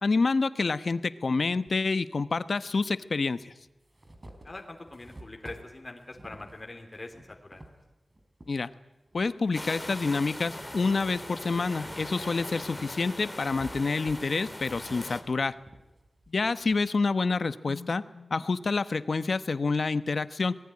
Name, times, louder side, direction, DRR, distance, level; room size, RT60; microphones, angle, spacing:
voice 1, 0.0-3.5 8.5-8.7 9.1-15.6 16.3-20.6, left 4 dB, 65° left, 13 dB, 1.0 m, -28 dB
sound 1, 1.7-1.8 2.8-2.9 3.4-8.5 9.1-10.3 10.7-16.8, right 1 dB, 30° right, 4.5 m, -51 dB
voice 2, 4.4-7.6 16.4-16.5, left 2 dB, 35° left, 2 dB, 3.2 m, -43 dB
sound 2, 9.5-15.2, left 1 dB, 15° left, 3.2 m, -40 dB
25.0 x 20.0 x 9.7 m, 1.0 s
wide cardioid pair, 80°, 0 cm